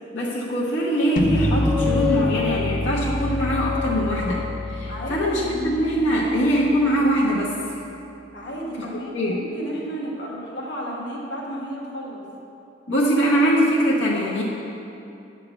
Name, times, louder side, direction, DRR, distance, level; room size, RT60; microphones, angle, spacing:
voice 1, 0.1-7.5 8.8-8.9 9.1-9.4 12.9-14.4, equal, 85° left, -6 dB, 1.1 m, -22 dB
sound 1, 1.2-7.2, left 1 dB, 45° left, 0.6 m, -27 dB
sound 2, 1.4-4.9, left 10 dB, 5° left, 0.5 m, -30 dB
voice 2, 4.9-5.9 8.3-12.2, right 1 dB, 65° left, -3 dB, 1.4 m, -32 dB
8.8 x 3.8 x 6.7 m, 2.8 s
head